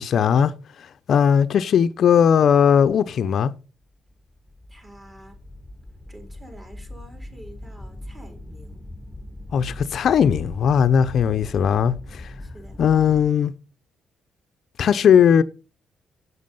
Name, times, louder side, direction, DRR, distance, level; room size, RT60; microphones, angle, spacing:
voice 1, 0.0-3.5 9.5-12.3 12.8-13.5 14.8-15.4, left 8 dB, 60° left, 0.6 m, -18 dB
sound 1, 4.1-13.3, left 1 dB, 5° left, 1.4 m, -40 dB
voice 2, 4.7-5.4 6.1-8.8 11.3-11.6 12.4-12.8, right 1 dB, 20° right, 4.2 m, -47 dB
8.1 x 7.5 x 5.5 m
cardioid pair, 90°, 0 cm